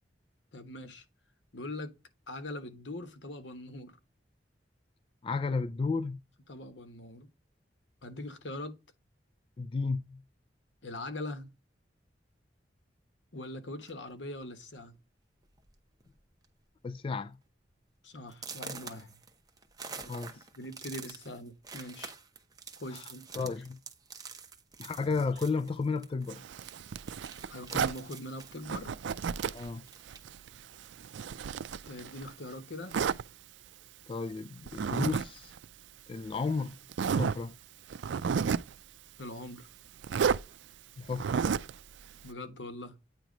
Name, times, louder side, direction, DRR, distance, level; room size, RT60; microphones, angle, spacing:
voice 1, 0.5-1.0 1.5-1.9 2.3-4.0 6.5-7.3 8.0-8.7 10.8-11.5 13.3-14.9 18.0-19.2 19.9-20.1 20.6-22.1 22.8-23.2 27.4-29.0 31.9-33.0 39.2-39.7 42.2-43.0, left 1 dB, 80° left, 1.2 m, -42 dB
voice 2, 5.2-6.2 9.6-10.2 16.8-17.4 19.9-20.4 22.9-23.0 23.4-23.8 24.8-26.4 29.5-29.8 34.1-35.5 36.1-36.8 37.1-37.5 41.0-41.3, left 4 dB, 30° left, 0.3 m, -33 dB
sound 1, 13.8-14.1 14.9-15.0 15.4-15.7 16.0-16.5 16.9-17.0 17.5-17.6 18.3-26.4 26.6-30.4 30.7-31.8, right 5 dB, 20° right, 0.9 m, -47 dB
Zipper (clothing), 26.3-28.0 28.6-29.7 30.1-32.3 32.9-33.2 34.7-35.2 35.5-35.6 36.3-36.4 36.9-37.4 37.9-38.7 40.0-40.4 41.1-41.7, right 6 dB, 80° right, 0.4 m, -31 dB
9.0 x 3.0 x 5.1 m
head